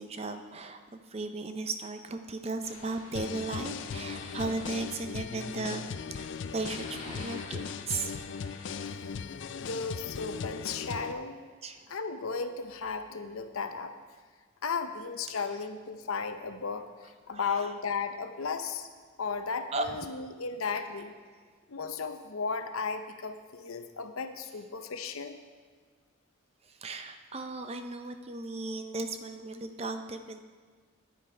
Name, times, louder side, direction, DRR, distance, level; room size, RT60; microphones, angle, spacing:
voice 1, 0.0-5.8 6.1-8.2 11.6-12.0 17.3-17.7 19.7-20.0 26.7-30.4, right 3 dB, 30° right, 8 dB, 0.5 m, -36 dB
sound 1, 2.6-8.9, left 2 dB, 35° left, 1.5 m, -49 dB
sound 2, 3.1-11.1, left 6 dB, 60° left, 0.4 m, -38 dB
voice 2, 8.9-11.4 11.9-13.9 14.6-18.9 19.2-21.1 21.7-25.4, left 5 dB, 85° left, 8 dB, 0.8 m, -35 dB
10.0 x 8.9 x 5.0 m, 1.5 s
head